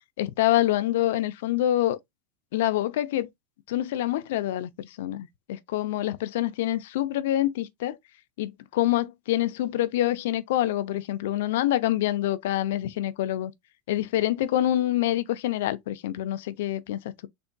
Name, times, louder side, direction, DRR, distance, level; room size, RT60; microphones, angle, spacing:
voice 1, 0.2-2.0 2.5-3.3 3.7-8.0 8.4-13.5 13.9-17.3, left 13 dB, 80° left, 0.5 m, -26 dB
3.9 x 3.4 x 2.2 m
supercardioid pair, 130°, 0 cm